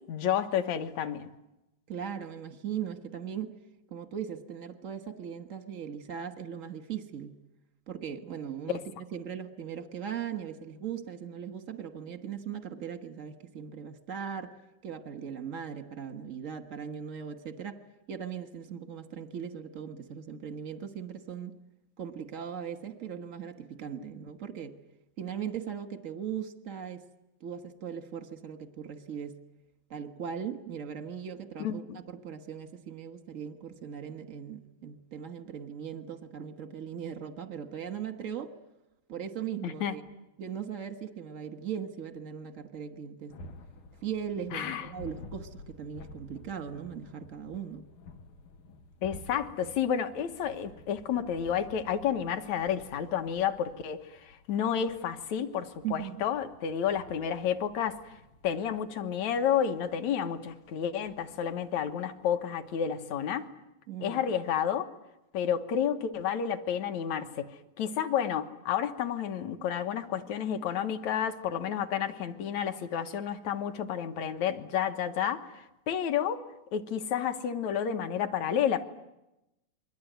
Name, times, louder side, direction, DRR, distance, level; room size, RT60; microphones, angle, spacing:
voice 1, 0.1-1.3 8.7-8.8 24.0-24.1 31.6-31.8 39.6-40.0 44.5-44.9 49.0-58.0 58.4-63.5 64.0-64.9 65.3-67.5 67.8-76.4 76.7-78.8, left 8 dB, 70° left, 7 dB, 2.5 m, -30 dB
voice 2, 1.9-3.5 3.9-7.4 7.9-14.5 14.8-17.8 18.1-21.5 22.0-24.8 25.2-27.0 27.4-29.4 29.9-38.5 39.1-40.0 40.4-43.4 44.0-47.9 55.8-56.2 63.9-64.2, right 8 dB, 55° right, 8 dB, 0.9 m, -39 dB
sound 1, 43.3-62.8, left 2 dB, 90° left, 3.0 m, -52 dB
28.0 x 22.5 x 9.3 m, 0.93 s
omnidirectional pair, 3.5 m